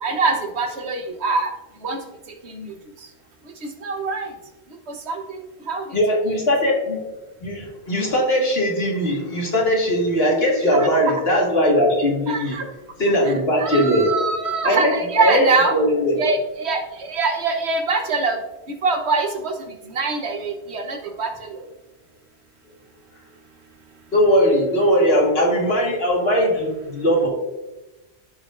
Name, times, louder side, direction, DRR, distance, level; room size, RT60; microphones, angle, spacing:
voice 1, 0.0-1.5 1.8-2.0 2.5-2.7 3.6-4.3 4.9-5.2 5.7-5.8 10.8-10.9 12.3-12.7 13.6-15.7 16.2-18.4 18.8-19.5 19.9-21.6, right 4 dB, 80° right, 4 dB, 1.4 m, -23 dB
voice 2, 5.9-7.0 7.4-12.6 13.0-14.1 14.6-15.5 15.7-16.2 24.1-27.3, equal, 65° left, -2 dB, 2.1 m, -19 dB
14.0 x 4.9 x 2.6 m, 1.0 s
omnidirectional pair, 1.1 m